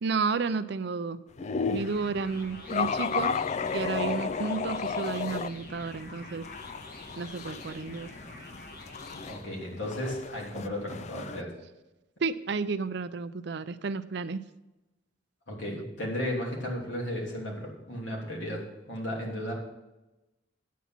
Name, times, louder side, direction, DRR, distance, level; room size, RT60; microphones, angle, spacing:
voice 1, 0.0-1.2 1.7-3.3 3.7-6.4 7.2-8.1 12.2-14.4, right 4 dB, 60° right, 12 dB, 0.5 m, -31 dB
sound 1, 1.4-2.0 2.7-5.5 5.9-11.4, left 5 dB, 35° left, 0.3 m, -33 dB
sound 2, 1.8-9.4, left 1 dB, 50° left, 1.9 m, -46 dB
voice 2, 9.2-11.5 15.5-19.5, equal, 75° left, -2 dB, 3.2 m, -34 dB
9.5 x 8.4 x 5.9 m, 1.0 s
head